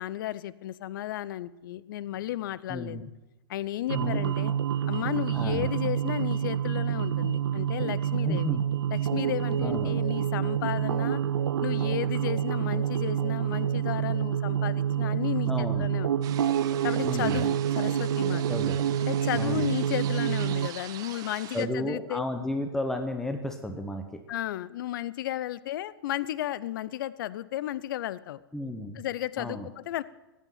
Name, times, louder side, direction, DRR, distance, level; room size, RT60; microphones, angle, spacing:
voice 1, 0.0-3.1 3.5-4.5 4.9-8.6 8.9-11.2 11.6-16.1 16.8-18.4 19.0-22.2 24.3-28.4 28.9-30.0, left 13 dB, 55° left, 19 dB, 0.6 m, -33 dB
voice 2, 2.7-3.0 3.9-4.3 5.3-5.7 8.2-8.6 9.6-9.9 15.5-15.9 17.0-17.4 18.5-18.8 19.3-19.7 21.5-24.2 28.5-29.0 29.4-29.7, left 1 dB, 5° left, 6 dB, 1.0 m, -33 dB
sound 1, 3.9-20.7, right 9 dB, 80° right, 0.5 m, -27 dB
sound 2, 16.2-21.7, right 12 dB, 30° right, 0.7 m, -43 dB
14.5 x 9.2 x 5.8 m, 1.1 s
hypercardioid pair, 120°, 13 cm